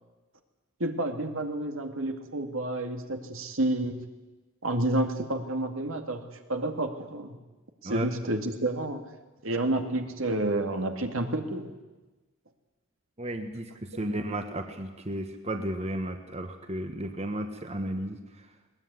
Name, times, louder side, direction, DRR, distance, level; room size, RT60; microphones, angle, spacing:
voice 1, 0.8-4.0 4.6-6.2 6.5-7.4 7.8-9.0 9.4-11.7 13.9-14.1, right 1 dB, 75° right, 5 dB, 2.3 m, -30 dB
voice 2, 13.2-18.5, right 1 dB, 30° right, 6 dB, 1.4 m, -34 dB
21.0 x 19.0 x 9.7 m, 1.2 s
head